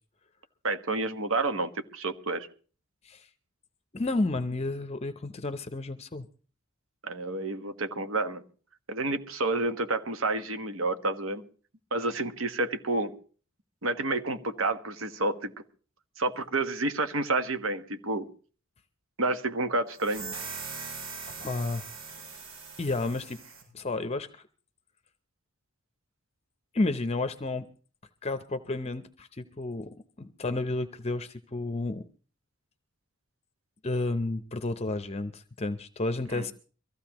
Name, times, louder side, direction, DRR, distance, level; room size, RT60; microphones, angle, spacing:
voice 1, 0.6-2.5 7.0-8.4 8.9-11.4 11.9-13.1 13.8-15.5 16.2-18.3 19.2-20.2 36.3-36.5, right 2 dB, 70° right, 9 dB, 1.3 m, -29 dB
voice 2, 3.9-6.3 21.4-21.9 22.8-23.4 23.7-24.4 26.7-27.6 28.2-29.9 30.2-32.0 33.8-36.5, left 2 dB, 30° left, 10 dB, 0.6 m, -31 dB
sound 1, 20.0-23.7, right 5 dB, 90° right, 7.6 m, -41 dB
23.5 x 15.0 x 3.0 m, 0.39 s
head